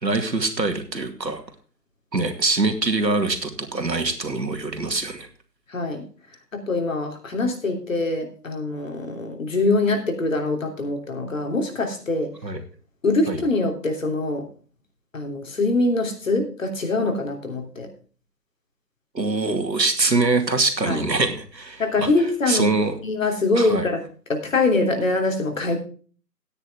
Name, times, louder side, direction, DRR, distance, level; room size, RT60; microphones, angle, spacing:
voice 1, 0.0-1.4 2.1-5.3 12.4-12.6 13.3-13.4 19.1-22.1 22.5-23.0 23.5-23.9, right 3 dB, 85° right, 6 dB, 2.6 m, -23 dB
voice 2, 5.7-6.1 6.5-12.3 13.0-14.5 15.1-17.9 20.8-21.0 21.8-22.7 23.0-24.0 24.3-25.8, left 2 dB, 50° left, 4 dB, 3.1 m, -23 dB
14.0 x 9.7 x 3.5 m, 0.40 s
figure-of-eight pair, 155°, 50 cm